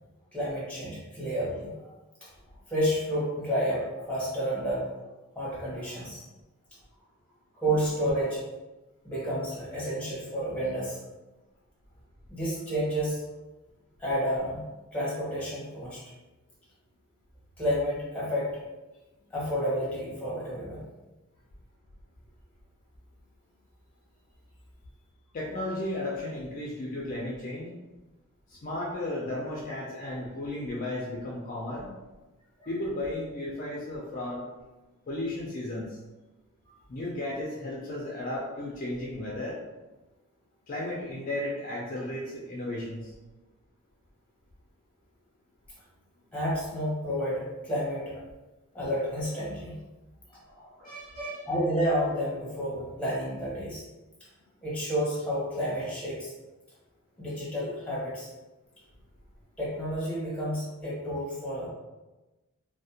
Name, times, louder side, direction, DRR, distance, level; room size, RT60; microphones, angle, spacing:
voice 1, 0.3-1.7 2.7-4.8 5.3-6.2 7.6-8.4 9.0-11.0 12.3-13.2 14.0-14.6 14.9-16.0 17.6-18.5 19.3-20.8 32.6-32.7 46.3-48.1 48.7-49.8 50.5-50.9 51.2-53.8 54.6-56.3 57.2-58.3 59.6-61.7, equal, 5° left, -7 dB, 0.8 m, -30 dB
voice 2, 25.3-27.7 28.5-31.9 32.7-34.4 35.1-36.0 36.9-39.6 40.7-43.1 50.8-51.5, left 1 dB, 40° left, -5 dB, 0.4 m, -34 dB
2.4 x 2.0 x 2.8 m, 1.1 s
head